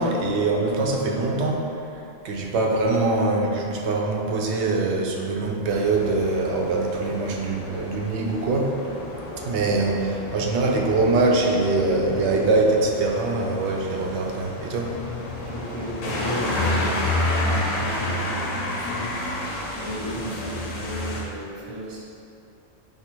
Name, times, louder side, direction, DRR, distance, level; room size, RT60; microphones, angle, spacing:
voice 1, 0.0-1.6 2.2-8.8 9.5-14.9, right 2 dB, 70° right, 0 dB, 0.8 m, -23 dB
sound 1, 5.7-21.2, left 1 dB, 90° left, 1.1 m, -30 dB
voice 2, 15.4-19.1 19.8-22.0, right 1 dB, 30° right, -4 dB, 0.6 m, -34 dB
5.6 x 2.0 x 4.4 m, 2.7 s
omnidirectional pair, 1.3 m